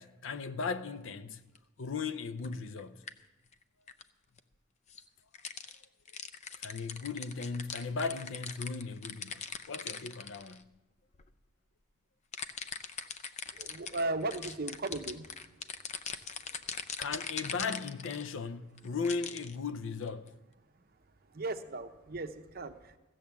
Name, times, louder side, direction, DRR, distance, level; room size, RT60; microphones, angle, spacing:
voice 1, 0.0-1.4 1.8-3.0 6.6-10.7 16.5-16.6 17.0-20.4, left 4 dB, 90° left, 0.6 m, -37 dB
sound 1, 1.6-1.7 2.4-3.1 3.5-3.6 3.9-4.0 4.4-4.5 4.9-5.0 5.3-10.6 11.1-11.3 12.3-18.3 18.8-19.6 20.1-20.3, left 6 dB, 40° left, 0.5 m, -41 dB
voice 2, 13.5-15.3 21.3-23.0, right 2 dB, 50° right, 0.8 m, -36 dB
15.5 x 7.7 x 7.1 m
head